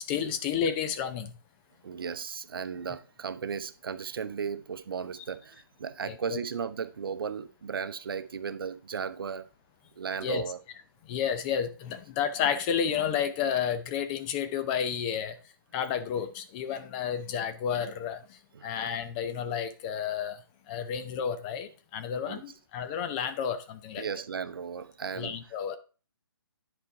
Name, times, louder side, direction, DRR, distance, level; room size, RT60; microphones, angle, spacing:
voice 1, 0.1-1.3 6.1-6.4 10.2-10.4 11.1-15.4 15.7-20.4 20.7-24.1 25.2-25.8, left 8 dB, 20° left, 0.6 m, -31 dB
voice 2, 1.8-9.5 10.0-10.6 18.5-18.7 22.3-22.4 24.0-25.6, right 6 dB, 65° right, 0.8 m, -35 dB
10.5 x 4.4 x 4.7 m
hypercardioid pair, 155°, 13 cm